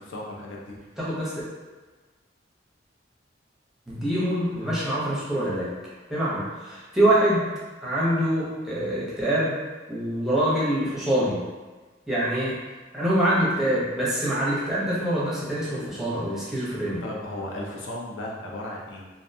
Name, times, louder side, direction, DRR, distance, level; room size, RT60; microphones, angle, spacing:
voice 1, 0.0-0.8 17.0-19.1, left 1 dB, 80° left, -2 dB, 0.5 m, -35 dB
voice 2, 1.0-1.3 3.9-5.7 6.1-7.5 7.8-9.5 9.9-11.4 12.1-12.6 12.9-17.0, right 1 dB, ahead, -9 dB, 0.6 m, -25 dB
2.5 x 2.1 x 2.6 m, 1.3 s
head